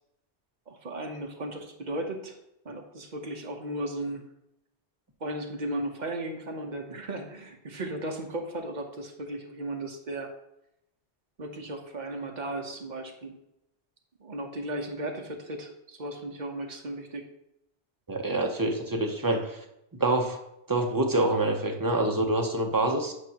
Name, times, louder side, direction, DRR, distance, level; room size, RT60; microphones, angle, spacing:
voice 1, 0.7-2.4 2.6-4.3 5.2-10.3 11.4-13.3 14.2-17.3, right 1 dB, 45° right, 3 dB, 0.9 m, -36 dB
voice 2, 18.1-19.6 20.0-20.4 20.7-23.1, right 2 dB, 25° right, 3 dB, 0.6 m, -26 dB
8.2 x 5.1 x 2.9 m, 0.82 s
omnidirectional pair, 1.2 m